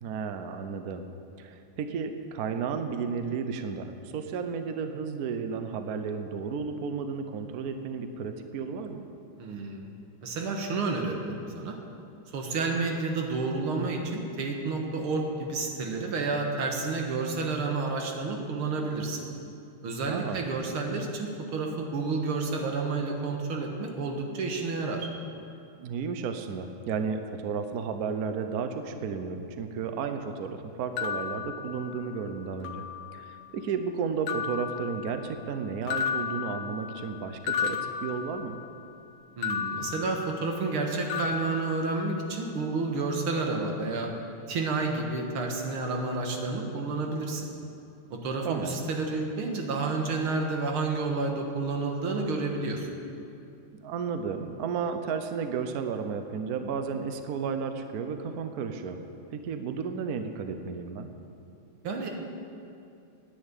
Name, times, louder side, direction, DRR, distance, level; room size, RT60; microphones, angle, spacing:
voice 1, 0.0-1.1 1.4-9.0 20.1-20.4 25.8-32.8 33.1-38.6 48.4-48.8 53.7-59.0 59.3-61.1, right 6 dB, 60° right, 7 dB, 1.0 m, -33 dB
voice 2, 9.4-9.8 10.2-11.8 12.3-19.2 19.8-25.1 39.4-44.1 44.5-47.5 48.1-52.9 61.8-62.1, right 3 dB, 75° right, 2 dB, 2.3 m, -30 dB
sound 1, 31.0-32.2 32.6-33.4 34.3-35.5 35.9-38.8 39.4-40.8 41.1-42.4, left 7 dB, 75° left, 1.7 m, -34 dB
10.0 x 9.9 x 9.0 m, 2.6 s
omnidirectional pair, 2.4 m